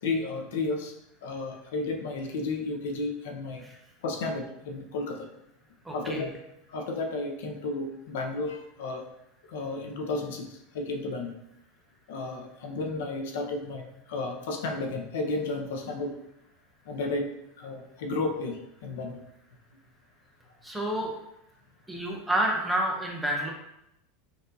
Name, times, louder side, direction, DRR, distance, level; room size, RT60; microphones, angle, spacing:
voice 1, 0.0-0.9 1.2-3.6 4.0-5.3 5.9-6.3 6.7-9.0 9.5-11.3 12.1-16.1 16.9-17.3 17.6-19.2, left 3 dB, 80° left, 3 dB, 0.7 m, -32 dB
voice 2, 5.9-6.3 20.6-21.1 21.9-23.5, right 1 dB, 5° right, 0 dB, 0.5 m, -29 dB
5.3 x 2.5 x 2.6 m, 0.83 s
supercardioid pair, 170°, 0 cm